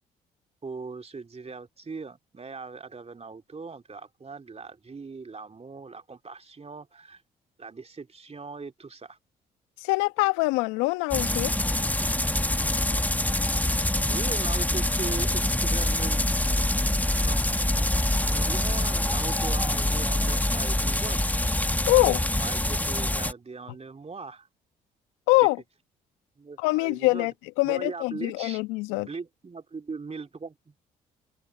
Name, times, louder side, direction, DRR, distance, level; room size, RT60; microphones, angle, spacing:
voice 1, 0.6-7.2 7.6-9.2 14.1-16.2 17.2-17.4 17.8-17.9 18.1-21.3 22.4-24.5 26.4-27.3 27.6-28.6 28.9-30.7, right 4 dB, 30° right, 2.8 m, -40 dB
voice 2, 9.8-11.5 21.9-22.2 25.3-25.6 26.6-29.1, left 23 dB, 80° left, 1.6 m, -24 dB
sound 1, 11.1-23.3, left 1 dB, 10° left, 1.5 m, -25 dB
hypercardioid pair, 45°, 20 cm